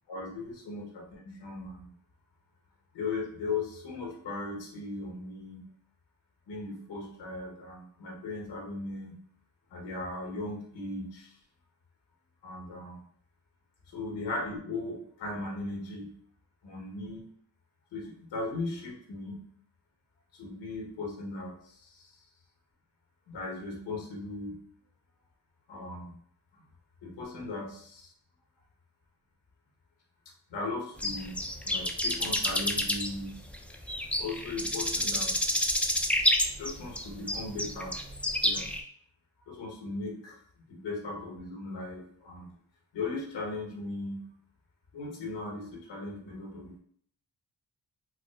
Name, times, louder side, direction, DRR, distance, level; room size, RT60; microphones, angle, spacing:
voice 1, 0.1-1.9 2.9-5.7 6.5-9.2 9.7-11.4 12.4-13.0 13.9-16.2 16.6-17.2 17.9-19.4 20.3-22.2 23.3-24.6 25.7-26.1 26.5-26.6 27.0-28.1 30.5-33.5 34.2-35.3 36.6-38.0 38.4-38.7 39.5-40.4 40.7-42.5 42.9-44.3 44.9-46.8, left 3 dB, 85° left, -1 dB, 1.1 m, -38 dB
sound 1, 31.0-38.8, left 1 dB, 5° left, 0.4 m, -29 dB
4.6 x 2.1 x 2.3 m, 0.62 s
cardioid pair, 45°, 42 cm